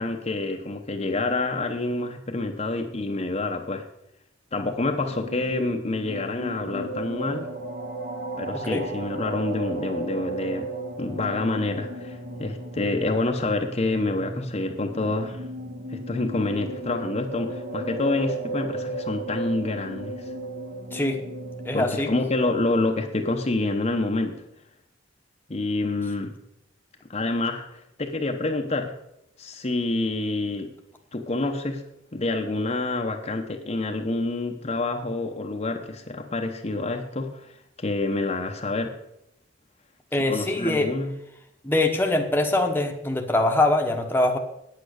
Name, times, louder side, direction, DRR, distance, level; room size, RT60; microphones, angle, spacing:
voice 1, 0.0-3.8 4.5-7.5 8.4-10.7 11.0-15.4 15.9-20.1 21.7-24.4 25.5-26.3 27.1-28.9 29.4-30.7 31.1-31.8 32.1-38.9 40.3-41.1, left 2 dB, 35° left, 3 dB, 0.9 m, -27 dB
sound 1, 4.9-22.2, right 2 dB, 65° right, 1.7 m, -35 dB
voice 2, 21.7-22.1 40.1-40.9 41.6-44.4, left 2 dB, 10° left, 3 dB, 1.0 m, -23 dB
9.0 x 8.6 x 6.5 m, 0.81 s
head